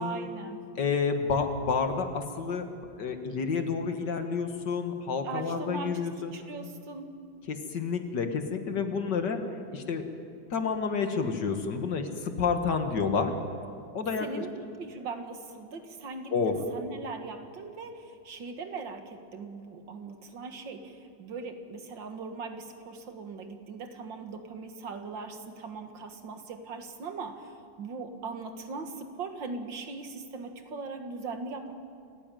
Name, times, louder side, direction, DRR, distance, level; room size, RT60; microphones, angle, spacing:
voice 1, 0.0-0.7 5.2-7.2 14.2-14.5 14.8-31.7, right 4 dB, 85° right, 6 dB, 2.4 m, -40 dB
voice 2, 0.8-2.7 3.0-6.3 7.5-10.0 10.5-13.3 13.9-14.4 16.3-16.6, left 5 dB, 70° left, 6 dB, 2.3 m, -29 dB
28.0 x 15.5 x 9.2 m, 2.4 s
omnidirectional pair, 2.0 m